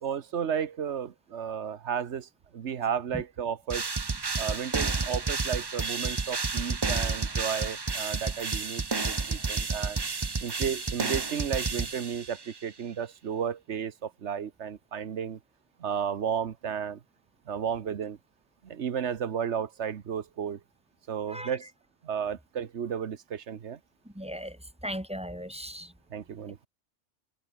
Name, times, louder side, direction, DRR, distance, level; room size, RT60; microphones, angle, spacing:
voice 1, 0.0-3.9 4.4-10.0 10.4-15.4 15.8-17.0 17.5-18.2 18.6-20.6 21.1-21.7 22.0-23.8 26.1-26.6, right 8 dB, 70° right, 1.3 m, -33 dB
sound 1, 3.7-12.5, right 4 dB, 25° right, 0.7 m, -31 dB
voice 2, 24.0-24.6 24.8-25.9, equal, 5° right, 1.7 m, -37 dB
omnidirectional pair, 1.2 m